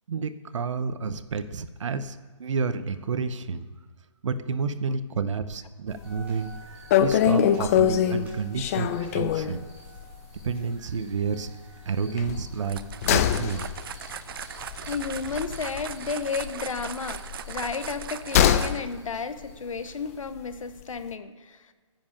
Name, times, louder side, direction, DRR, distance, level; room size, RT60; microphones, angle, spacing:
voice 1, 0.1-3.7 4.2-9.7 10.4-11.5 11.8-12.8 13.1-13.7, right 5 dB, 65° right, 13 dB, 0.9 m, -30 dB
sound 1, 6.0-6.3 6.5-6.6 6.9-9.6 10.0-10.1 10.4-10.5 12.2-16.1 16.4-18.8 19.1-19.2, left 10 dB, 30° left, 0.5 m, -24 dB
sound 2, 6.0-20.2, right 5 dB, 10° right, 3.1 m, -51 dB
sound 3, 12.6-19.0, right 9 dB, 45° right, 0.5 m, -39 dB
voice 2, 14.9-21.7, left 5 dB, 80° left, 12 dB, 1.0 m, -33 dB
10.5 x 7.6 x 8.6 m, 1.5 s
hypercardioid pair, 150°, 17 cm